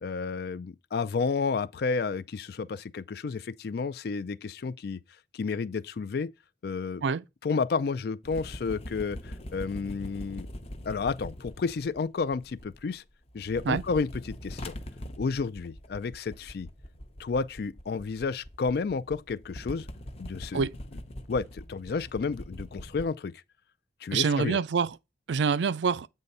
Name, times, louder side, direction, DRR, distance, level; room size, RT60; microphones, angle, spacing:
voice 1, 0.0-5.0 5.3-6.3 6.6-7.1 7.4-10.5 10.9-13.0 13.3-14.8 15.2-16.7 17.2-19.9 20.2-20.7 21.3-23.3 24.0-24.6, left 4 dB, 60° left, 0.4 m, -31 dB
sound 1, 8.2-13.0 13.3-23.0, equal, 35° left, 0.7 m, -42 dB
voice 2, 24.1-25.0 25.3-26.1, right 5 dB, 80° right, 0.4 m, -26 dB
8.3 x 3.3 x 5.3 m
head